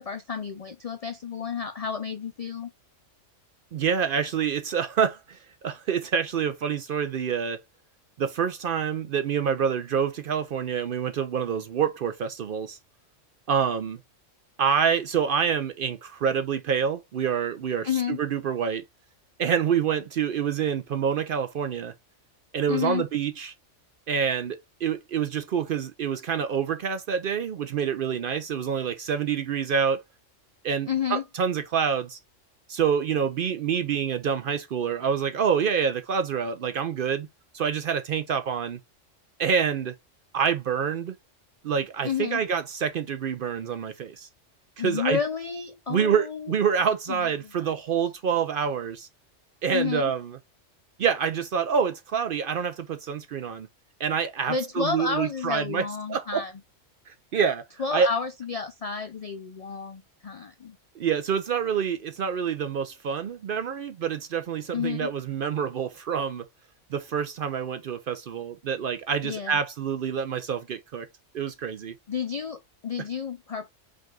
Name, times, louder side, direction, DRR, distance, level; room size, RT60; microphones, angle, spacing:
voice 1, 0.0-2.7 17.8-18.2 22.7-23.0 30.9-31.2 42.0-42.4 44.8-46.6 47.1-47.6 49.7-50.1 54.5-56.5 57.8-60.8 64.7-65.1 69.2-69.6 72.1-73.7, left 6 dB, 65° left, 0.3 m, -31 dB
voice 2, 3.7-7.6 8.2-12.8 13.5-14.0 14.6-18.8 19.4-21.9 22.5-23.5 24.1-30.0 30.6-32.2 32.7-37.3 37.5-38.8 39.4-39.9 40.3-41.1 41.6-44.3 44.8-45.2 45.9-49.1 49.6-50.4 51.0-53.7 54.0-55.8 56.1-56.4 57.1-57.6 57.9-58.1 61.0-66.5 66.9-71.1 71.3-71.9, right 7 dB, 60° right, 0.6 m, -27 dB
5.1 x 2.4 x 3.8 m
omnidirectional pair, 1.3 m